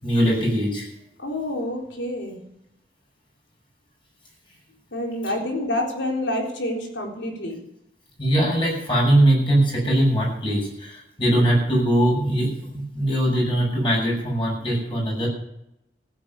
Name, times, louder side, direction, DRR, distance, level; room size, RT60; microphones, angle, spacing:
voice 1, 0.0-0.9 8.2-15.3, right 1 dB, 25° left, -2 dB, 7.3 m, -21 dB
voice 2, 1.2-2.4 4.9-7.6, left 1 dB, 85° left, 1 dB, 4.0 m, -28 dB
15.5 x 8.7 x 8.2 m, 0.81 s
head